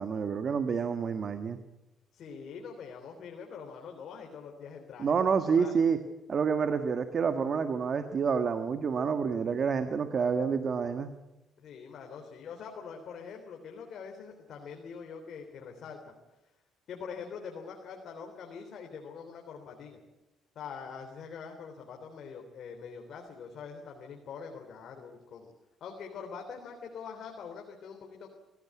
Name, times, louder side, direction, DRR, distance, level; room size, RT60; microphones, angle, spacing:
voice 1, 0.0-1.6 5.0-6.0 6.3-11.1, right 6 dB, 50° right, 8 dB, 1.5 m, -28 dB
voice 2, 2.1-5.2 5.4-5.7 11.6-16.1 16.9-20.0 20.5-25.5 25.8-28.3, left 6 dB, 70° left, 2 dB, 3.4 m, -44 dB
23.0 x 16.5 x 9.6 m, 1.0 s
cardioid pair, 90°, 0 cm